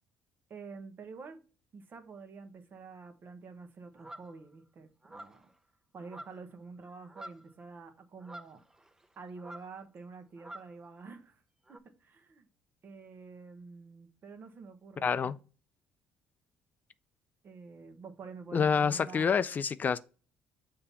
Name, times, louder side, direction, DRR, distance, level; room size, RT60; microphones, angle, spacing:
voice 1, 0.5-1.4 1.7-5.4 5.9-8.6 9.2-11.4 11.7-12.5 12.8-15.4 17.4-19.5, right 4 dB, 50° right, 1.1 m, -48 dB
sound 1, 4.0-4.3 5.0-5.5 6.0-6.6 6.8-7.5 8.2-9.1 9.4-9.8 10.4-10.8 11.7-11.8, right 1 dB, 10° right, 0.6 m, -48 dB
voice 2, 15.0-15.3 18.5-20.0, left 6 dB, 40° left, 0.3 m, -27 dB
6.7 x 2.8 x 5.5 m
supercardioid pair, 65°, 5 cm